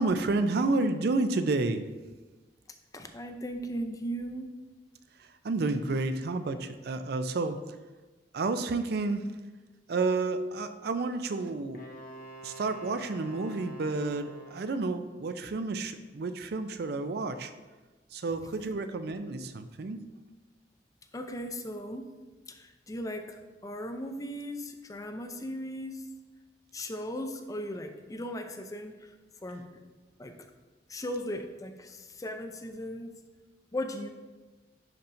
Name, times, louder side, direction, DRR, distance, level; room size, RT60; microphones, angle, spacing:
voice 1, 0.0-1.8 5.2-7.6 8.3-9.3 9.9-11.8 12.4-17.5 18.1-20.0, right 3 dB, 60° right, 10 dB, 0.4 m, -30 dB
voice 2, 2.9-4.5 21.1-22.0 22.5-26.0 26.7-29.2 29.4-29.6 30.2-30.5 30.9-33.1 33.7-34.1, equal, 20° left, 6 dB, 0.5 m, -37 dB
Wind instrument woodwind instrument, 11.7-14.9, right 2 dB, 55° left, 0.9 m, -47 dB
11.0 x 4.3 x 2.6 m, 1.2 s
head